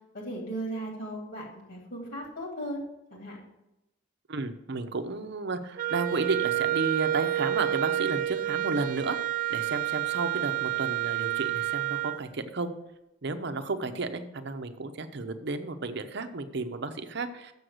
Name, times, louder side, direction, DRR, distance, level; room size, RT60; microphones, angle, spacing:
voice 1, 0.1-2.8 3.1-3.4, right 1 dB, 55° left, 0 dB, 2.4 m, -36 dB
voice 2, 4.3-9.2 9.5-12.7 13.2-17.5, right 3 dB, 60° right, 9 dB, 0.7 m, -32 dB
Wind instrument woodwind instrument, 5.8-12.2, right 14 dB, 45° right, 0.3 m, -29 dB
7.0 x 6.4 x 7.8 m, 0.91 s
head